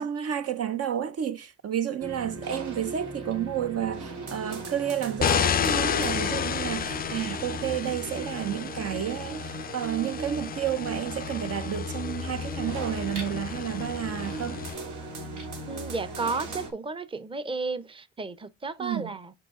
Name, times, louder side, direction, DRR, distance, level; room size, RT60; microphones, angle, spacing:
voice 1, 0.0-14.6 18.8-19.1, right 10 dB, 55° right, 0.7 m, -31 dB
sound 1, 2.0-16.7, right 2 dB, 80° right, 2.8 m, -38 dB
sound 2, 5.2-14.8, left 8 dB, 30° left, 0.4 m, -31 dB
voice 2, 15.6-19.3, right 3 dB, 15° right, 0.7 m, -33 dB
6.7 x 4.7 x 3.6 m
cardioid pair, 90°, 30 cm